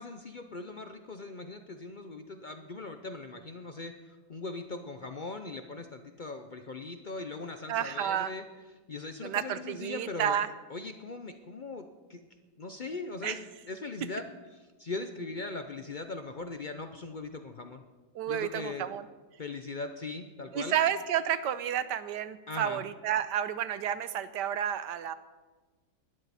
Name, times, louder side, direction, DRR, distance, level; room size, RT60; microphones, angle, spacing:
voice 1, 0.0-8.4 8.9-10.4 10.7-12.2 12.6-14.2 14.8-17.8 18.3-18.9 19.4-20.8 22.5-22.8, left 3 dB, 65° left, 7 dB, 0.4 m, -40 dB
voice 2, 7.7-8.3 9.2-10.5 13.2-13.4 18.1-19.1 20.5-25.1, right 10 dB, 80° right, 13 dB, 1.4 m, -31 dB
19.0 x 12.5 x 4.2 m, 1.3 s
omnidirectional pair, 1.9 m